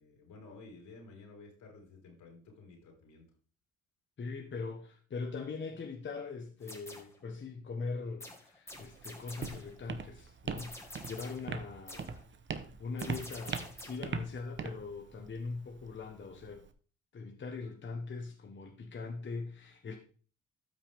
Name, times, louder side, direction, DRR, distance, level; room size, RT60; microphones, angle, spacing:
voice 1, 0.0-3.2, left 3 dB, 80° left, 4.7 m, -53 dB
voice 2, 4.2-12.2 12.8-16.6 17.1-20.0, left 4 dB, 40° left, 1.4 m, -41 dB
sound 1, 6.6-7.2 8.2-9.8 10.6-11.5 11.9-12.2 13.0-14.1, left 1 dB, 10° left, 2.3 m, -48 dB
Walk footsteps, 8.7-16.7, right 5 dB, 40° right, 1.1 m, -42 dB
13.0 x 6.1 x 3.6 m
cardioid pair, 90°, 30 cm